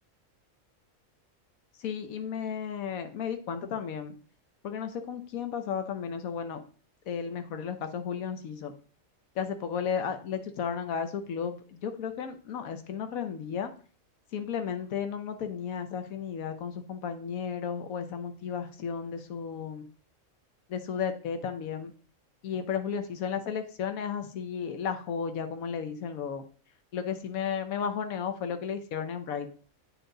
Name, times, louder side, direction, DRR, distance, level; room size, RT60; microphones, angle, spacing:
voice 1, 1.8-4.1 4.6-6.6 7.1-8.7 9.4-13.7 14.3-19.9 20.7-21.9 22.4-26.4 26.9-29.5, left 7 dB, 85° left, 8 dB, 1.2 m, -34 dB
8.3 x 4.6 x 3.8 m, 0.40 s
omnidirectional pair, 1.4 m